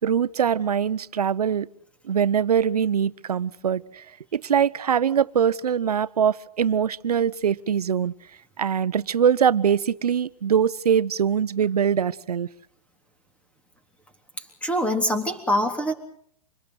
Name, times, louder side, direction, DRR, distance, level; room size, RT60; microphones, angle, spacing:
voice 1, 0.0-1.7 2.0-4.0 4.3-8.1 8.6-12.5, right 8 dB, 90° right, 16 dB, 1.0 m, -22 dB
voice 2, 14.4-15.9, equal, 5° left, 6 dB, 3.5 m, -24 dB
27.0 x 21.0 x 6.6 m, 0.64 s
hypercardioid pair, 135°, 19 cm